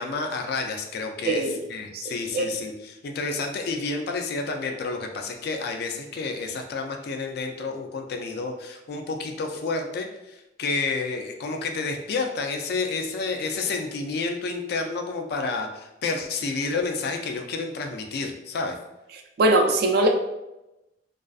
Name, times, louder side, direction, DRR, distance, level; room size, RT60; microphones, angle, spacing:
voice 1, 0.0-18.8, left 3 dB, 60° left, 4 dB, 0.3 m, -30 dB
voice 2, 1.2-1.6 1.9-2.5 19.4-20.1, right 2 dB, 60° right, 3 dB, 0.3 m, -21 dB
2.4 x 2.3 x 2.3 m, 0.95 s
head